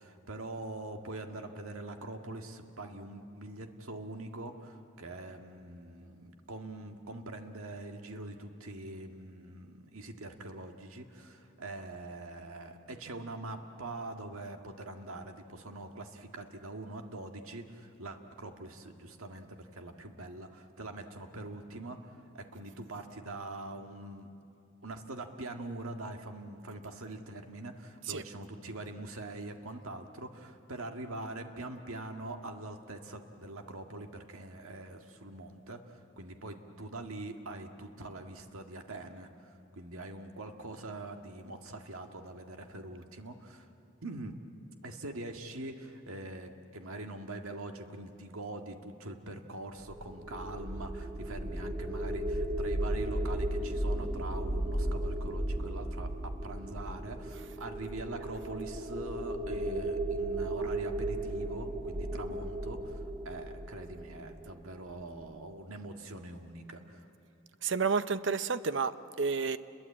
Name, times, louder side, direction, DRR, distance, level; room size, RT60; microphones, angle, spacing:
voice 1, 0.0-24.3 24.8-43.7 44.0-44.4 44.8-67.1, right 2 dB, 90° right, 5 dB, 1.9 m, -43 dB
sound 1, 49.8-64.9, right 1 dB, 15° right, 2.0 m, -35 dB
voice 2, 67.6-69.6, right 5 dB, 60° right, 13 dB, 0.7 m, -30 dB
30.0 x 22.0 x 8.6 m, 2.7 s
head